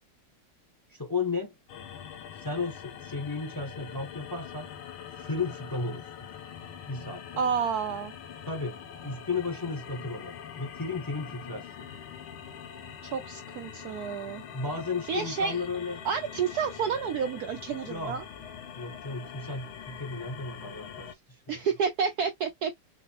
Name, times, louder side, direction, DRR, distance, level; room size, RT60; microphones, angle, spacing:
voice 1, 0.9-1.5 2.4-4.7 5.2-6.4 6.9-7.2 8.5-11.9 14.5-16.0 17.9-18.2 18.8-21.7, left 4 dB, 20° left, 0.5 m, -34 dB
sound 1, 1.7-21.1, left 8 dB, 75° left, 1.7 m, -44 dB
voice 2, 7.4-8.1 13.0-14.4 15.1-15.6 16.0-18.2 21.5-22.8, right 6 dB, 80° right, 0.8 m, -30 dB
4.9 x 2.8 x 2.9 m
omnidirectional pair, 2.4 m